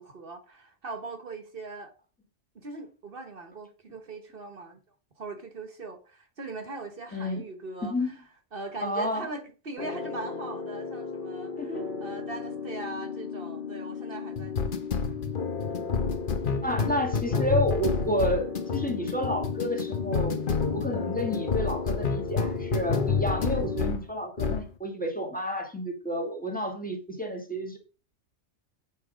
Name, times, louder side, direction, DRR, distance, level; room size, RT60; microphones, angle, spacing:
voice 1, 0.0-1.9 2.6-4.8 5.2-7.9 8.5-15.2, right 3 dB, 50° right, 1.3 m, -40 dB
voice 2, 7.1-7.4 7.8-8.2 8.8-9.3 11.6-11.8 16.6-20.4 20.7-27.8, equal, 5° left, 1.7 m, -30 dB
sound 1, 9.8-24.1 24.4-24.7, left 5 dB, 45° left, 1.1 m, -30 dB
8.4 x 5.2 x 5.0 m
omnidirectional pair, 1.2 m